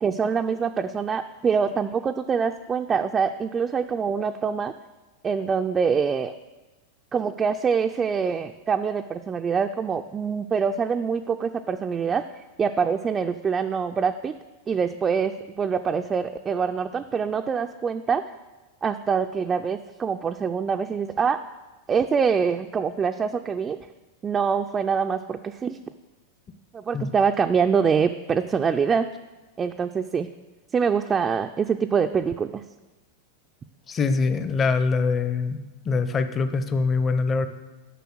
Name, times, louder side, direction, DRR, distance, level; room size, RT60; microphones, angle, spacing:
voice 1, 0.0-4.7 5.2-6.3 7.1-14.3 14.7-18.2 18.8-21.4 21.9-23.8 24.2-25.8 26.7-29.1 29.6-30.3 30.7-32.6, right 6 dB, 25° right, 6 dB, 0.3 m, -25 dB
voice 2, 33.9-35.6 35.9-37.5, left 4 dB, 25° left, 10 dB, 0.7 m, -23 dB
7.0 x 5.7 x 6.2 m, 1.2 s
hypercardioid pair, 100°, 0 cm